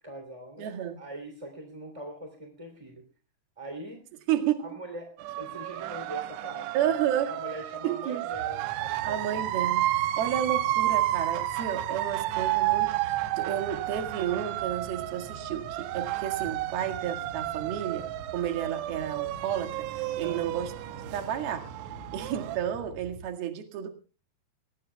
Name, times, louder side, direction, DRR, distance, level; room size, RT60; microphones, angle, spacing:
voice 1, 0.0-3.1 3.6-4.1 4.6-9.5 10.4-10.7 20.2-20.5, equal, 10° right, 1.9 m, -43 dB
voice 2, 0.6-1.0 4.3-4.7 6.7-7.3 7.8-8.3 9.0-9.9 10.2-20.7 21.1-21.7 22.1-23.9, right 10 dB, 60° right, 3.4 m, -31 dB
sound 1, 5.2-22.6, right 15 dB, 80° right, 3.2 m, -31 dB
sound 2, 8.3-23.3, right 2 dB, 40° right, 4.5 m, -46 dB
22.5 x 19.0 x 2.3 m
omnidirectional pair, 5.5 m